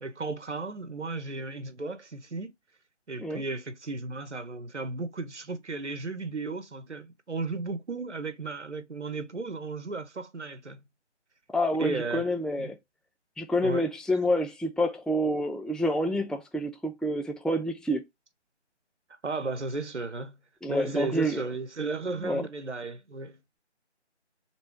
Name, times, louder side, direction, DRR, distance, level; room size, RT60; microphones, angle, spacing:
voice 1, 0.0-2.5 3.1-10.8 11.8-12.3 12.6-12.7 13.6-13.9 19.2-20.4 20.7-23.4, right 3 dB, 75° right, 0.8 m, -34 dB
voice 2, 11.5-12.8 13.4-18.0 20.6-21.4 22.2-22.4, equal, ahead, 0.3 m, -28 dB
3.0 x 3.0 x 4.3 m
figure-of-eight pair, 170°, 35 cm